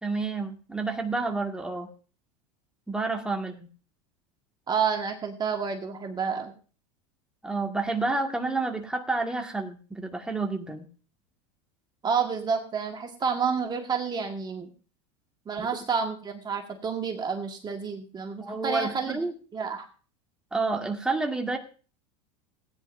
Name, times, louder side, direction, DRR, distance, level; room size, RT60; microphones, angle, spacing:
voice 1, 0.0-1.9 2.9-3.7 7.4-10.9 15.6-15.7 18.4-19.3 20.5-21.6, right 3 dB, 5° right, 2 dB, 1.9 m, -29 dB
voice 2, 4.7-6.5 12.0-14.7 15.4-19.2 19.5-19.9, right 6 dB, 25° right, 4 dB, 1.7 m, -29 dB
17.5 x 10.0 x 2.6 m, 0.38 s
hypercardioid pair, 95°, 16 cm